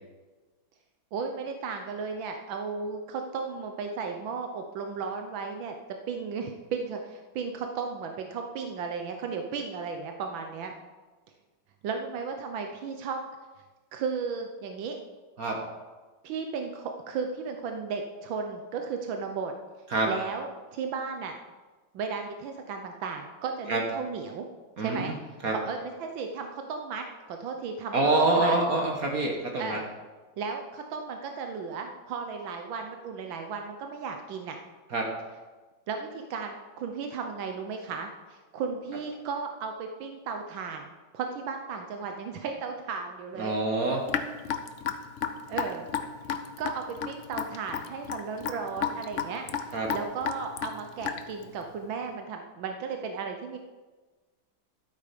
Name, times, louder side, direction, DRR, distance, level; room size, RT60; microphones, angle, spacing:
voice 1, 1.1-5.8 6.1-10.7 11.8-13.2 13.9-15.0 16.2-19.5 20.0-21.4 21.9-24.5 24.8-28.6 29.6-29.9 30.4-34.6 35.9-43.5 45.5-45.9 46.6-49.5 49.9-53.6, right 5 dB, 85° right, 4 dB, 1.6 m, -35 dB
voice 2, 27.9-29.8 34.9-35.1 43.4-44.0 49.7-49.9, right 2 dB, 50° right, 1 dB, 1.7 m, -26 dB
Raindrop / Drip, 44.1-51.4, left 8 dB, 60° left, 0.8 m, -32 dB
12.5 x 8.4 x 5.2 m, 1.3 s
omnidirectional pair, 2.1 m